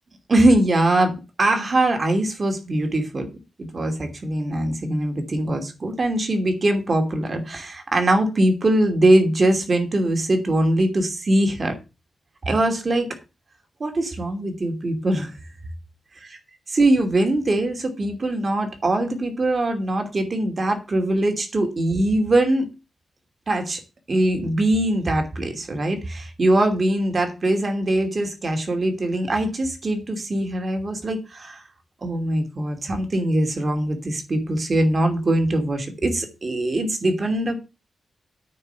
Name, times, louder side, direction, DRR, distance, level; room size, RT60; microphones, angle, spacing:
voice 1, 0.3-3.3 3.7-11.7 12.5-13.1 13.8-15.3 16.7-22.7 23.5-23.8 24.1-31.6 32.0-37.6, right 1 dB, 35° right, 5 dB, 2.7 m, -22 dB
9.4 x 5.3 x 7.8 m, 0.28 s
wide cardioid pair, 125°, 0 cm